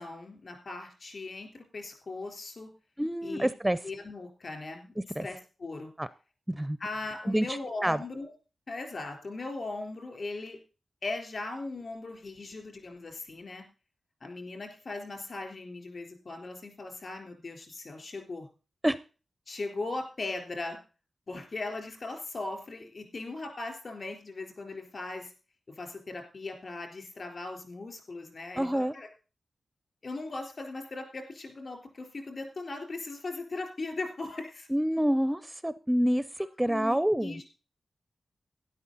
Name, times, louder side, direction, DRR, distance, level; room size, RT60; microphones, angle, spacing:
voice 1, 0.0-2.7 3.2-3.5 3.8-4.9 5.2-5.9 6.8-8.3 8.7-10.6 11.0-13.6 14.2-18.5 19.5-20.8 21.3-25.3 25.7-29.1 30.0-34.7 36.6-37.4, left 3 dB, 50° left, 5 dB, 3.8 m, -39 dB
voice 2, 3.0-3.8 5.2-5.3 6.0-6.1 6.5-6.8 7.3-7.6 7.8-8.0 18.8-19.0 28.6-28.9 34.7-36.2 36.6-37.4, equal, 5° right, 15 dB, 0.5 m, -27 dB
12.5 x 11.0 x 4.0 m, 0.34 s
wide cardioid pair, 125°, 0 cm